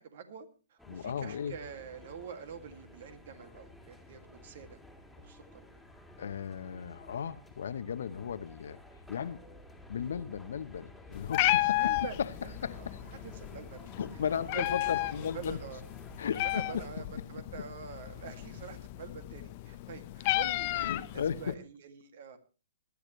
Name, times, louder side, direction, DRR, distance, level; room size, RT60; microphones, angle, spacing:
voice 1, 0.0-4.8 5.2-5.7 11.8-13.9 14.5-15.8 16.4-22.4, right 6 dB, 55° right, 2.3 m, -46 dB
sound 1, 0.8-16.9, left 1 dB, ahead, 2.4 m, -53 dB
voice 2, 0.9-1.5 6.2-8.8 9.1-9.4 9.9-12.3 12.6-13.0 14.0-15.6 16.2-16.8 17.2-17.3 20.7-21.6, left 7 dB, 65° left, 1.0 m, -36 dB
Meow, 11.1-21.5, left 18 dB, 40° left, 0.8 m, -33 dB
20.0 x 12.0 x 3.2 m
hypercardioid pair, 125°, 0 cm